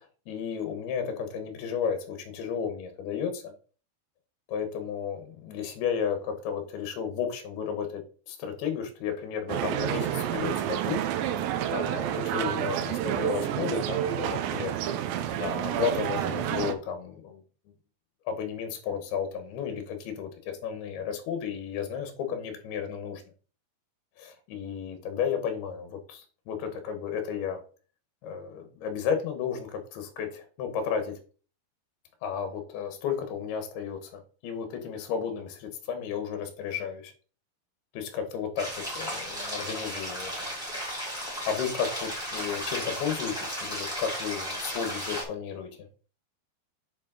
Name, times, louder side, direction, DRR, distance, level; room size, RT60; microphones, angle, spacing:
voice 1, 0.3-3.5 4.5-8.0 8.3-11.0 11.7-14.7 15.4-17.4 18.3-23.2 24.2-27.6 28.2-31.2 32.2-37.1 37.9-40.3 41.4-45.7, left 7 dB, 80° left, 8 dB, 3.2 m, -33 dB
sound 1, 9.5-16.7, right 10 dB, 80° right, 2.2 m, -29 dB
sound 2, 38.6-45.2, equal, ahead, 2.8 m, -34 dB
8.5 x 4.7 x 4.0 m, 0.39 s
omnidirectional pair, 4.5 m